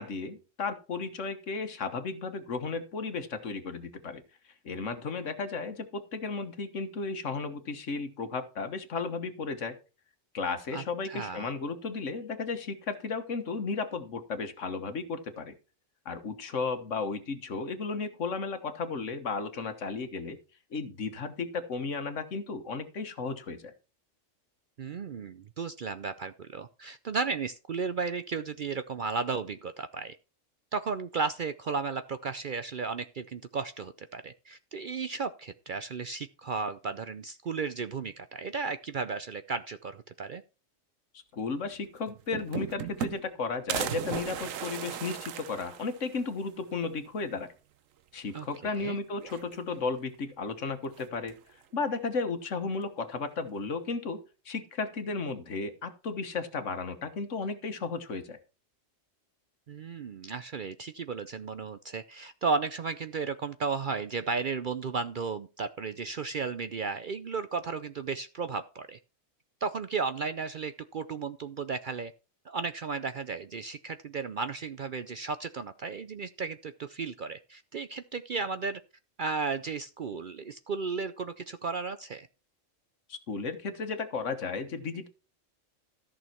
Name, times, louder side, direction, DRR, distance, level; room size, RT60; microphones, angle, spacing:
voice 1, 0.0-4.2 4.6-9.7 10.3-15.5 16.0-20.4 20.7-23.7 41.3-47.5 48.1-51.4 51.7-54.2 54.4-58.4 83.1-85.1, left 4 dB, 70° left, 9 dB, 1.6 m, -34 dB
voice 2, 10.7-11.5 24.8-30.2 30.7-40.4 48.3-49.0 59.7-69.0 69.6-72.1 72.5-78.8 79.2-82.3, right 4 dB, 55° right, 11 dB, 0.6 m, -34 dB
sound 1, 41.7-41.8 42.1-43.4 43.7-46.3 46.7-46.8 47.1-47.2 48.3-48.8 49.2-49.9 50.9-51.5, right 9 dB, 85° right, 1.2 m, -37 dB
14.0 x 6.3 x 4.4 m, 0.33 s
omnidirectional pair, 1.3 m